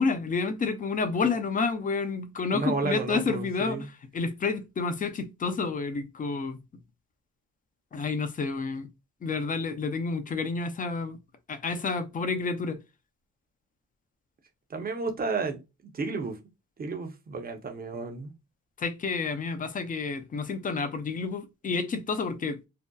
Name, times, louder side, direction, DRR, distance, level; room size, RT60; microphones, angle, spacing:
voice 1, 0.0-6.6 7.9-8.9 9.2-11.2 11.5-12.8 18.8-22.7, left 4 dB, 30° left, 0.4 m, -30 dB
voice 2, 2.5-3.8 14.7-15.6 15.9-16.4 16.8-18.3, right 4 dB, 30° right, 0.6 m, -32 dB
2.6 x 2.1 x 2.2 m
cardioid pair, 90°, 30 cm